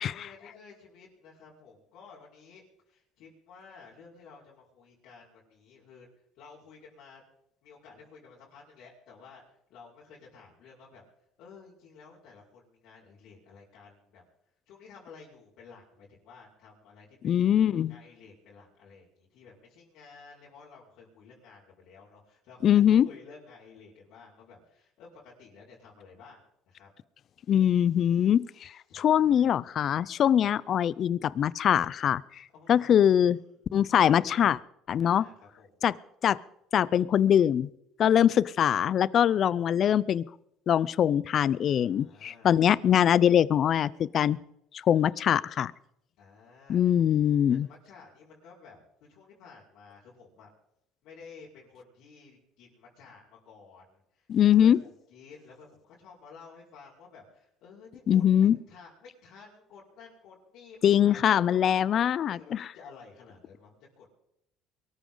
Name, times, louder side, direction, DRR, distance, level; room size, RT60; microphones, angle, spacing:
voice 1, 0.0-2.6 2.9-6.1 6.4-7.2 7.6-11.0 11.4-14.2 14.7-17.4 17.9-26.4 26.7-26.9 28.9-29.5 32.5-33.4 33.7-34.5 35.0-35.8 38.1-38.3 41.6-42.5 46.2-47.0 47.5-50.5 51.0-61.7 62.3-64.1, left 5 dB, 70° left, -8 dB, 4.9 m, -53 dB
voice 2, 17.2-18.0 22.6-23.1 27.5-32.2 32.7-33.4 33.7-34.6 34.9-35.3 35.8-36.0 36.2-36.4 36.7-37.7 38.0-40.3 40.7-44.4 44.8-45.7 46.7-47.7 54.3-54.8 58.1-58.6 60.8-62.6, left 9 dB, 45° left, 21 dB, 0.5 m, -23 dB
23.0 x 13.5 x 3.9 m, 0.77 s
cardioid pair, 115°, 0 cm